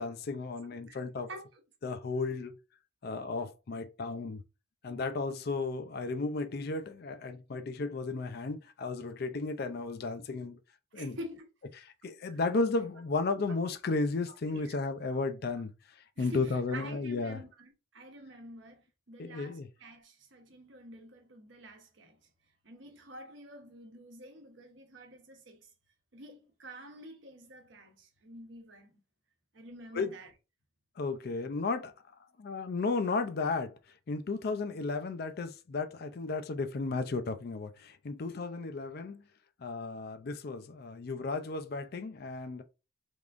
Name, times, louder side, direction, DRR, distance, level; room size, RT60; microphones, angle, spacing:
voice 1, 0.0-1.3 1.8-2.6 3.0-4.4 4.8-10.6 10.9-11.2 11.8-17.4 19.2-19.7 29.9-30.1 31.0-31.9 32.4-33.7 34.1-39.2 39.6-42.6, left 3 dB, 50° left, 0.4 m, -34 dB
voice 2, 1.3-1.6 10.9-11.4 12.3-12.4 12.8-12.9 14.5-14.8 16.2-18.8 19.1-22.2 22.6-25.7 26.1-29.0 29.5-30.3, right 1 dB, 65° right, 1.0 m, -48 dB
3.5 x 3.5 x 2.5 m
head